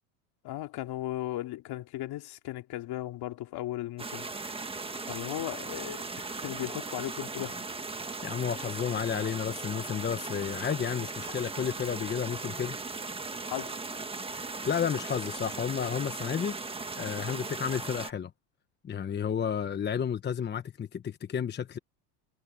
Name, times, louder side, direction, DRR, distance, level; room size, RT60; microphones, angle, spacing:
voice 1, 0.4-4.3 5.0-7.6 13.5-13.8 19.5-19.6, left 15 dB, 50° left, 3.0 m, -37 dB
sound 1, 4.0-18.1, right 3 dB, 10° right, 1.6 m, -38 dB
voice 2, 8.2-12.8 14.3-16.6 17.0-18.3 18.8-21.8, left 8 dB, 20° left, 1.0 m, -32 dB
supercardioid pair, 120°, 50 cm